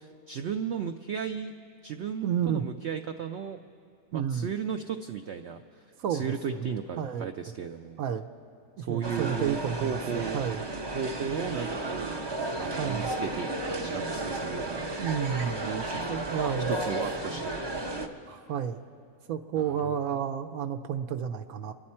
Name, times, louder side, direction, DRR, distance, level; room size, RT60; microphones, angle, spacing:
voice 1, 0.0-1.5 1.8-3.6 4.1-5.8 6.1-8.0 8.8-10.4 10.9-12.1 12.6-14.9 15.6-16.2 16.7-17.6 19.6-19.9, right 7 dB, 85° right, 6 dB, 0.6 m, -35 dB
voice 2, 2.2-2.6 4.1-4.5 6.0-6.6 7.0-7.3 8.0-8.3 8.8-10.6 12.8-13.1 15.0-15.7 16.1-16.7 18.3-18.8 19.3-21.7, right 8 dB, 70° right, 6 dB, 1.0 m, -31 dB
sound 1, 9.0-18.1, right 2 dB, 40° right, 0.3 m, -33 dB
26.0 x 11.0 x 4.3 m, 2.4 s
omnidirectional pair, 1.7 m